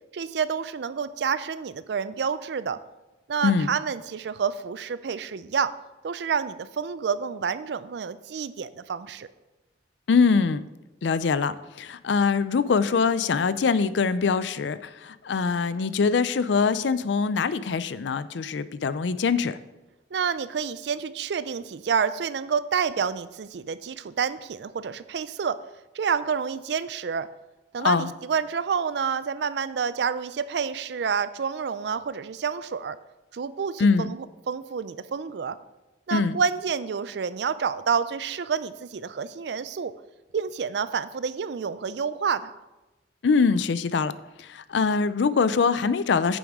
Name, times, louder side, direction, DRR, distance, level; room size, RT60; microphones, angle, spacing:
voice 1, 0.1-2.8 3.3-5.7 6.0-9.3 20.1-25.6 25.9-27.3 27.7-33.0 33.3-35.6 36.1-39.9 40.3-42.5, right 6 dB, 70° right, 15 dB, 0.4 m, -28 dB
voice 2, 10.1-10.6 11.0-19.6 27.8-28.1 33.8-34.1 36.1-36.4 43.2-44.1 44.4-46.4, left 5 dB, 80° left, 15 dB, 0.4 m, -23 dB
10.0 x 7.1 x 3.6 m, 1.1 s
head